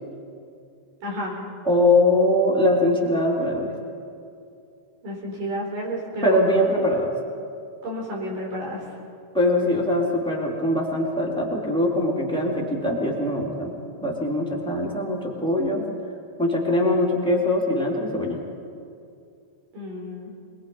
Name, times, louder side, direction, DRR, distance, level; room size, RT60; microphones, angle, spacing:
voice 1, 1.0-1.4 5.0-6.4 7.8-8.8 19.7-20.4, equal, 80° right, -2 dB, 6.0 m, -31 dB
voice 2, 1.6-3.7 6.2-7.1 9.3-13.7 14.0-15.8 16.4-18.4, left 1 dB, ahead, -3 dB, 3.1 m, -22 dB
27.0 x 21.0 x 5.6 m, 2.5 s
omnidirectional pair, 3.6 m